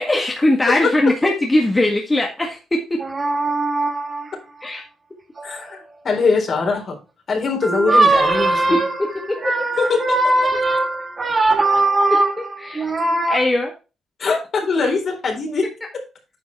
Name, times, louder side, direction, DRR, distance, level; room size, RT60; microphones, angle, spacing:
voice 1, 0.0-3.0 4.6-4.8 8.7-9.6 12.1-12.9 13.3-13.7, left 1 dB, 20° left, 0 dB, 1.7 m, -20 dB
sound 1, 3.0-4.3 5.4-5.7 7.6-13.4, right 2 dB, 30° right, 1.8 m, -20 dB
voice 2, 5.4-7.0 7.3-8.8 9.8-10.3 14.2-15.7, left 4 dB, 50° left, 1 dB, 3.9 m, -22 dB
9.5 x 5.3 x 4.6 m, 0.31 s
cardioid pair, 90°, 0 cm